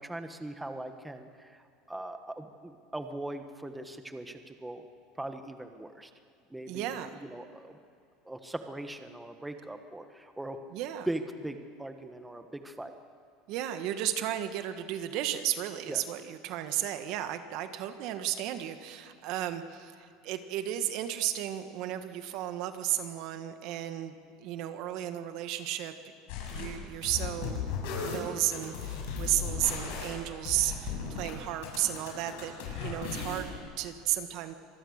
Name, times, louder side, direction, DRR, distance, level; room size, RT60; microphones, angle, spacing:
voice 1, 0.0-4.8 5.1-6.1 6.5-7.8 8.2-10.6 11.1-12.9 15.9-16.0, right 1 dB, 5° right, 7 dB, 1.4 m, -40 dB
voice 2, 6.7-7.1 10.7-11.1 13.5-25.9 26.5-27.6 28.1-34.6, right 12 dB, 60° right, 9 dB, 1.6 m, -34 dB
sound 1, 26.3-26.7 27.0-31.3 31.6-33.6, left 6 dB, 75° left, 6.7 m, -36 dB
25.5 x 19.5 x 6.6 m, 2.4 s
supercardioid pair, 125°, 0 cm